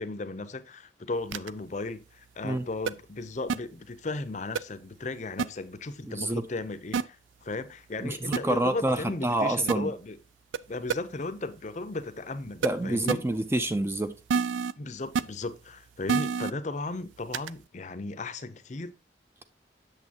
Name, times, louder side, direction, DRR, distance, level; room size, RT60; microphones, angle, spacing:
voice 1, 0.0-10.2 10.7-13.2 14.8-18.9, left 2 dB, 40° left, 0.6 m, -36 dB
sound 1, 1.3-1.5 2.9-3.0 3.5-3.6 4.6-4.7 5.4-5.5 6.9-7.0 8.3-8.4 9.7-9.8 10.5-10.6 10.9-11.0 12.6-12.7 13.1-13.2 14.3-14.7 15.2-15.3 16.1-16.5 17.3-17.5, right 5 dB, 85° right, 0.4 m, -26 dB
voice 2, 6.1-6.4 8.0-9.9 12.6-14.1, right 1 dB, 15° right, 0.4 m, -27 dB
8.4 x 6.8 x 2.8 m
head